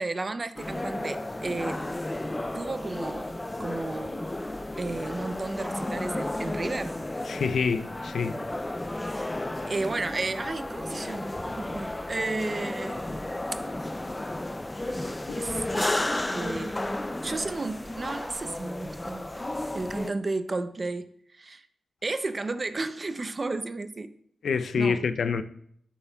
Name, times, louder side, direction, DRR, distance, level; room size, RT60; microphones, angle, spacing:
voice 1, 0.0-1.8 2.5-3.3 3.6-4.2 4.8-7.0 9.0-9.3 9.7-13.0 13.5-13.6 15.3-15.6 16.3-16.8 17.2-19.4 19.7-21.7 22.0-24.1 24.8-25.0, right 3 dB, 35° right, 0.6 m, -33 dB
sound 1, 0.6-20.1, left 1 dB, 15° left, 0.4 m, -33 dB
voice 2, 7.3-8.4 15.3-15.4 24.4-25.4, left 5 dB, 75° left, 0.4 m, -27 dB
12.0 x 7.0 x 2.3 m
cardioid pair, 75°, 0 cm